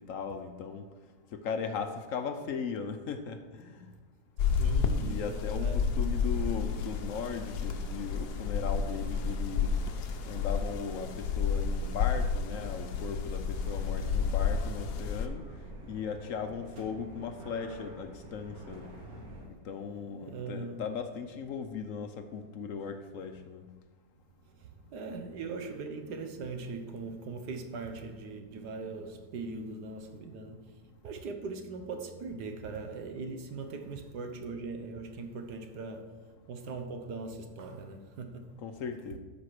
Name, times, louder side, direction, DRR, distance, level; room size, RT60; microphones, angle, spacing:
voice 1, 0.1-0.8 1.3-3.9 4.9-9.7 10.3-15.4 15.8-18.9 19.6-23.6 38.6-39.2, left 6 dB, 65° left, 0.9 m, -38 dB
sound 1, 4.4-15.3, left 6 dB, 80° left, 1.3 m, -31 dB
voice 2, 4.6-5.8 20.2-20.8 24.9-30.7 31.0-36.1 36.5-38.5, right 4 dB, 90° right, 1.6 m, -40 dB
sound 2, 5.7-19.5, right 1 dB, 65° right, 2.1 m, -48 dB
12.5 x 5.1 x 4.8 m
omnidirectional pair, 1.7 m